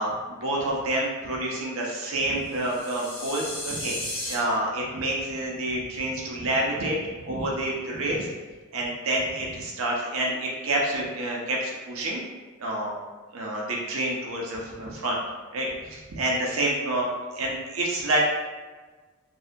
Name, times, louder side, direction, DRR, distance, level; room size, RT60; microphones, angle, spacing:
voice 1, 0.0-8.3 8.7-12.2 12.6-13.0 13.3-15.2 15.5-18.2, right 1 dB, 75° right, -2 dB, 0.5 m, -28 dB
sound 1, 2.5-4.3, left 1 dB, 85° left, 0.7 m, -34 dB
2.6 x 2.1 x 2.5 m, 1.3 s
head